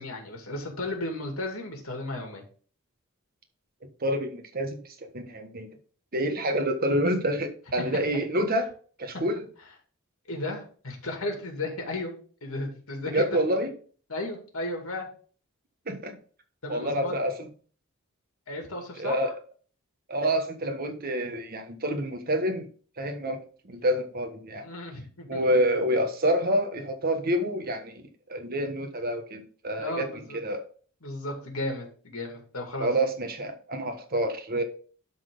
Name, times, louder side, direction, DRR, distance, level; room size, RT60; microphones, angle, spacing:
voice 1, 0.0-2.4 10.3-12.1 12.4-13.2 14.1-15.1 16.6-17.1 18.5-19.3 24.6-25.4 29.8-30.4 31.0-32.9, left 2 dB, 90° left, 2 dB, 2.5 m, -34 dB
voice 2, 4.0-5.7 6.1-8.7 9.0-9.4 13.1-13.7 15.8-16.2 16.7-17.5 18.9-19.4 20.1-22.7 23.0-24.7 25.3-30.1 30.3-30.7 32.8-34.6, equal, 45° right, 5 dB, 1.4 m, -28 dB
12.0 x 4.1 x 3.9 m, 0.42 s
head